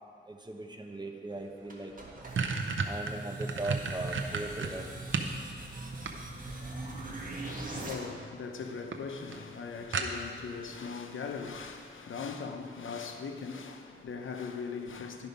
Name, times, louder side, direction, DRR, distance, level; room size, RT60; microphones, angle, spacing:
voice 1, 0.3-1.9 2.9-4.8, right 2 dB, 20° right, 0.8 m, -39 dB
sound 1, 1.5-1.6 1.9-5.4 5.8-6.6 7.7-8.1 8.5-8.6 8.9-9.0 9.3-9.4 9.9-10.5, right 5 dB, 80° right, 0.7 m, -33 dB
sound 2, 1.7-7.9, right 2 dB, 45° right, 1.5 m, -41 dB
voice 2, 7.0-15.3, left 5 dB, 85° left, 0.7 m, -40 dB
11.5 x 5.2 x 5.3 m
wide cardioid pair, 90°, 20 cm